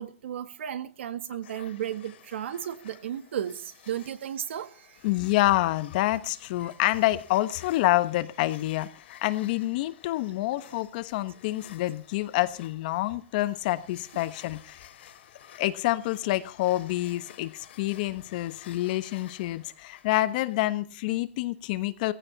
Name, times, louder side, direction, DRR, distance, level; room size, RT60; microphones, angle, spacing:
voice 1, 0.0-5.0 14.1-14.2, right 10 dB, 70° right, 1.8 m, -34 dB
sound 1, 1.4-20.8, left 10 dB, 60° left, 3.4 m, -53 dB
voice 2, 5.0-8.9 9.2-14.9 15.6-22.1, left 17 dB, 40° left, 1.2 m, -27 dB
17.5 x 16.0 x 4.1 m
hypercardioid pair, 160°, 7 cm